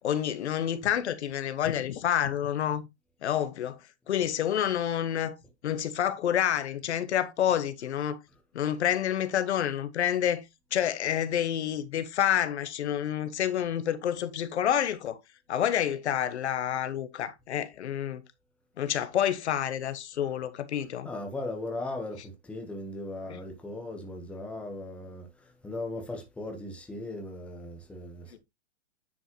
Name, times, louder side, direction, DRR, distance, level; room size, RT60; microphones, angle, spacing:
voice 1, 0.0-2.8 3.2-3.8 4.1-5.4 5.6-8.2 8.5-10.4 10.7-15.2 15.5-18.2 18.8-21.1 23.3-23.4 28.3-28.4, left 10 dB, 80° left, 1.2 m, -28 dB
voice 2, 21.0-28.4, left 2 dB, 5° left, 1.2 m, -38 dB
9.7 x 5.4 x 3.0 m
hypercardioid pair, 165°, 33 cm